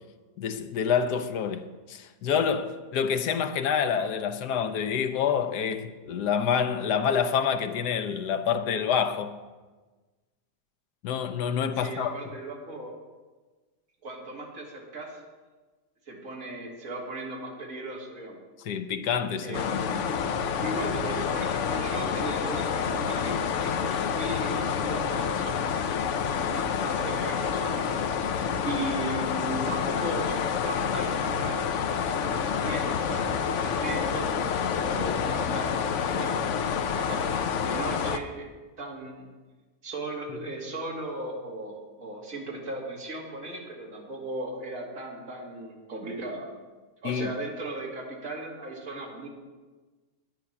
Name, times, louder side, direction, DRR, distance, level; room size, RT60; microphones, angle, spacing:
voice 1, 0.4-9.3 11.0-12.3 18.6-19.9 47.0-47.3, left 7 dB, 75° left, 1.3 m, -27 dB
voice 2, 11.8-12.9 14.0-15.2 16.0-18.4 19.4-20.1 20.6-25.7 26.5-27.8 28.6-35.8 36.1-36.4 36.9-37.3 37.6-38.5 38.8-39.3 39.8-46.5 47.0-49.3, right 2 dB, 55° right, 2.7 m, -37 dB
sound 1, 19.5-38.2, left 7 dB, 60° left, 0.8 m, -28 dB
11.0 x 9.8 x 5.8 m
omnidirectional pair, 1.7 m